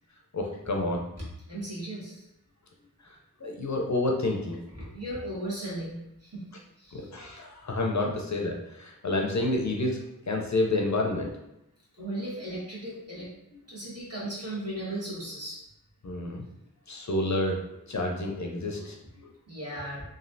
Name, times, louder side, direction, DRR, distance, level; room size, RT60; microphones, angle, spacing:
voice 1, 0.3-1.0 3.4-4.6 6.9-10.0 10.3-11.3 16.0-16.4 16.9-17.6 17.9-19.0, left 2 dB, 55° left, 0 dB, 0.5 m, -29 dB
voice 2, 1.2-2.3 4.7-6.5 6.8-7.1 12.0-15.6 19.1-20.0, right 1 dB, 45° right, -7 dB, 1.4 m, -37 dB
3.1 x 2.4 x 2.6 m, 0.84 s
wide cardioid pair, 45°, 35 cm